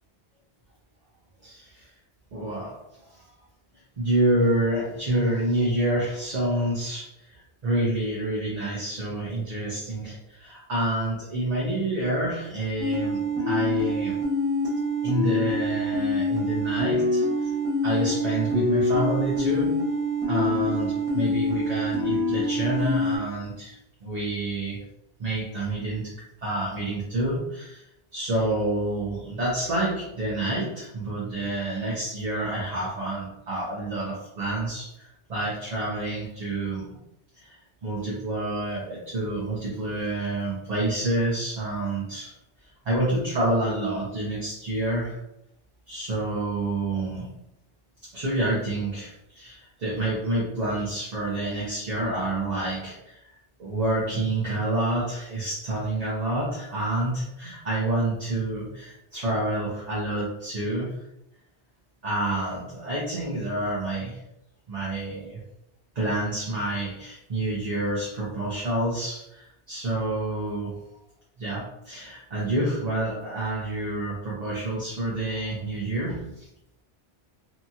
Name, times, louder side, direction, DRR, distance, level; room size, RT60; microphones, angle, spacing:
voice 1, 1.4-1.8 2.3-2.8 3.1-3.3 4.0-14.2 15.0-17.5 17.8-19.8 20.3-24.8 25.2-26.1 26.4-27.8 28.1-37.0 37.4-37.6 37.8-42.3 42.9-45.2 45.9-47.3 48.0-53.3 53.6-61.0 62.0-64.2 64.7-65.4 65.9-70.7 71.4-76.4, right 1 dB, 45° right, -6 dB, 0.7 m, -28 dB
sound 1, 12.8-23.2, left 1 dB, 5° right, 0.6 m, -25 dB
2.8 x 2.3 x 2.7 m, 0.84 s
omnidirectional pair, 1.1 m